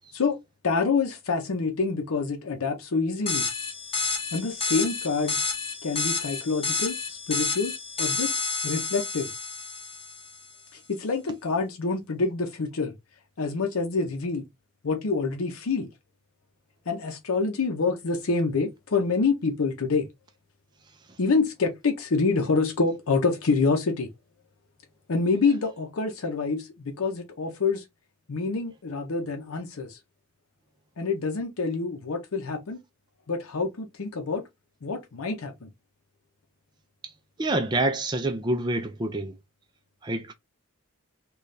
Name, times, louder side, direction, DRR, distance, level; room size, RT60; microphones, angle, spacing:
voice 1, 0.6-3.5 4.3-5.4 5.8-7.7 8.0-8.3 8.6-9.3 10.7-12.9 13.4-14.4 14.8-15.9 16.9-20.1 21.2-24.1 25.1-27.8 28.3-30.0 31.0-32.8 33.3-34.4 34.8-35.7, left 4 dB, 80° left, 0.6 m, -27 dB
sound 1, 3.3-10.4, left 4 dB, 25° left, 0.7 m, -30 dB
voice 2, 37.4-39.3 40.0-40.3, right 2 dB, 20° right, 0.4 m, -27 dB
3.9 x 2.3 x 3.2 m
head